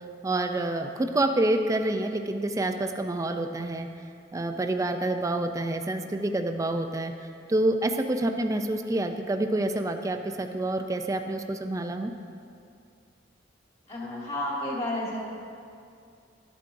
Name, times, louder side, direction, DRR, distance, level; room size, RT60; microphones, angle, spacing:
voice 1, 0.2-3.9 4.3-7.1 7.5-12.1, right 1 dB, 20° right, 6 dB, 0.4 m, -27 dB
voice 2, 13.9-15.2, left 1 dB, 35° left, -5 dB, 2.1 m, -31 dB
12.5 x 8.2 x 2.6 m, 2.4 s
head